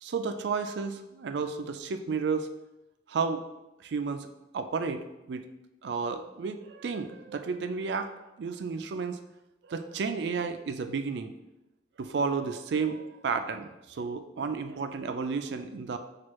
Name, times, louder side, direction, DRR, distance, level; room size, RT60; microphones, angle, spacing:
voice 1, 0.0-2.5 3.1-3.4 3.8-4.3 4.5-5.4 5.8-9.2 9.6-11.3 12.0-16.0, right 5 dB, 70° right, 8 dB, 0.4 m, -32 dB
6.1 x 2.4 x 3.0 m, 0.95 s
head